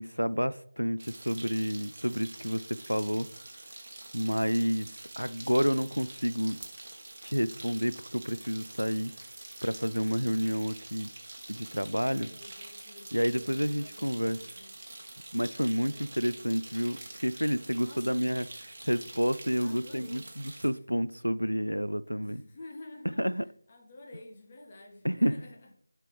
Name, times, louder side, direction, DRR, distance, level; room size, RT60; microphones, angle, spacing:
voice 1, 0.0-3.3 4.1-4.9 5.2-6.6 7.2-9.1 9.6-11.1 11.5-12.3 13.1-14.4 15.3-18.5 18.8-22.4 23.2-23.4 25.0-25.3, equal, 90° right, 0.3 m, -29 dB
sound 1, 1.0-20.7, right 2 dB, 40° right, 1.2 m, -46 dB
voice 2, 12.1-14.8 15.9-16.4 17.7-18.3 19.6-20.3 22.1-25.7, left 2 dB, 25° left, 1.1 m, -51 dB
9.6 x 4.5 x 3.4 m
figure-of-eight pair, 165°, 0 cm